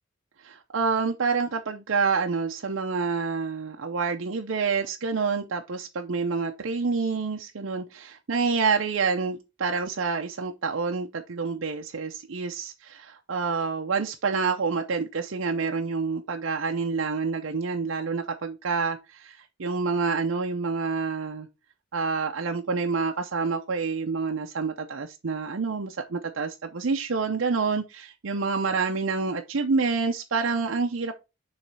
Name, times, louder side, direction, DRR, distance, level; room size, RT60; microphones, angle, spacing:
voice 1, 0.4-21.5 21.9-31.1, right 4 dB, 65° right, 0.6 m, -28 dB
6.9 x 3.2 x 4.6 m
head